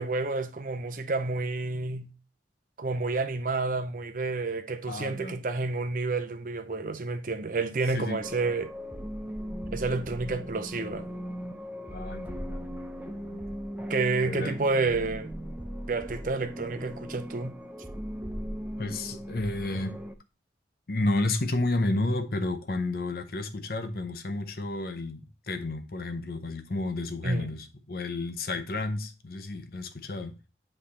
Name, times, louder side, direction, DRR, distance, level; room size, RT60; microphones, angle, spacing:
voice 1, 0.0-2.1 2.8-8.7 9.7-11.1 13.9-15.3 15.9-17.6 27.2-27.5, right 3 dB, 50° right, 0.6 m, -29 dB
voice 2, 4.9-5.4 7.9-8.2 11.9-13.4 14.2-14.6 18.8-20.0 20.9-30.3, left 2 dB, 55° left, 0.7 m, -31 dB
sound 1, 8.2-20.1, equal, 10° right, 0.5 m, -38 dB
8.1 x 3.4 x 4.1 m
head